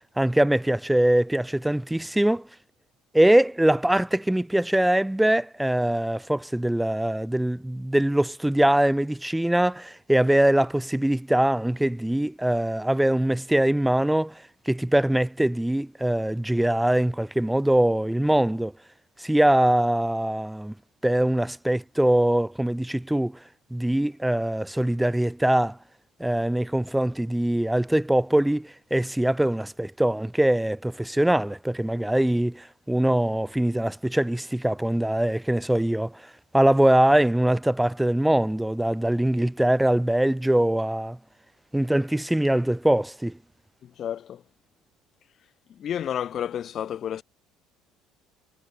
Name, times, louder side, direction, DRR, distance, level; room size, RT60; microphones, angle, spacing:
voice 1, 0.2-2.5 3.1-18.7 19.2-20.7 21.0-23.4 23.7-25.8 26.2-41.2 41.7-43.4, right 1 dB, 5° right, 2.4 m, -22 dB
voice 2, 43.8-44.4 45.7-47.2, left 9 dB, 45° left, 1.3 m, -31 dB
figure-of-eight pair, 55°, 0 cm